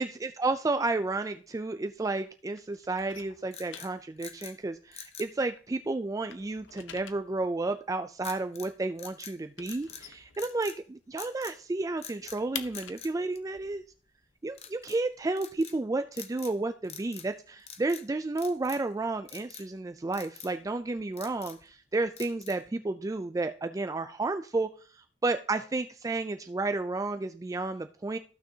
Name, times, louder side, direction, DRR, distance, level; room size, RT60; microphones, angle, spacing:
voice 1, 0.0-13.8 14.4-28.2, right 2 dB, 20° right, 9 dB, 0.3 m, -32 dB
sound 1, 0.8-2.3 2.5-5.7 6.0-11.1 11.4-11.5 11.8-15.5, left 9 dB, 80° left, 0.7 m, -47 dB
sound 2, 3.5-4.6 4.9-5.3 8.2-8.7 9.0-10.1 10.3-10.8 11.2-11.6 12.0-12.4 12.7-13.9 14.5-15.0 15.4-15.8 16.1-16.6 16.8-17.3 17.6-18.1 18.4-18.9 19.3-19.7 20.1-20.5 21.0-21.7 22.2-22.7, left 8 dB, 35° left, 0.8 m, -46 dB
14.5 x 6.2 x 2.8 m, 0.40 s
head